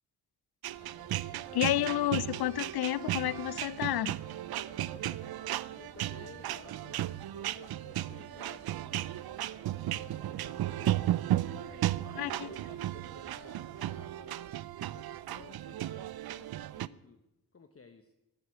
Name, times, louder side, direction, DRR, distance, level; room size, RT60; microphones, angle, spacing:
sound 1, 0.6-16.9, right 13 dB, 70° right, 0.5 m, -35 dB
sound 2, 0.7-14.0, left 1 dB, 85° left, 5.5 m, -57 dB
voice 1, 1.5-4.2 12.2-12.5, left 14 dB, 70° left, 0.5 m, -30 dB
voice 2, 5.8-9.3 9.9-11.0 11.5-14.5 14.8-17.2 17.5-18.1, left 4 dB, 35° left, 1.1 m, -55 dB
13.0 x 8.0 x 8.5 m
cardioid pair, 55°, 39 cm